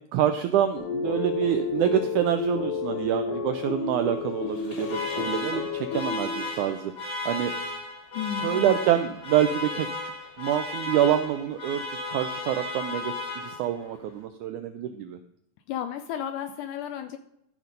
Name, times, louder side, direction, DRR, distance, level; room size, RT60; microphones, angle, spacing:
voice 1, 0.1-7.5 8.4-9.9 10.4-15.2, right 10 dB, 90° right, 8 dB, 1.7 m, -26 dB
sound 1, 0.8-6.7, left 5 dB, 65° left, 2.8 m, -31 dB
Alarm, 4.5-13.9, left 2 dB, 35° left, 2.9 m, -34 dB
voice 2, 8.1-8.7 15.7-17.2, left 9 dB, 85° left, 9 dB, 1.9 m, -33 dB
13.5 x 5.9 x 5.2 m, 0.77 s
omnidirectional pair, 4.2 m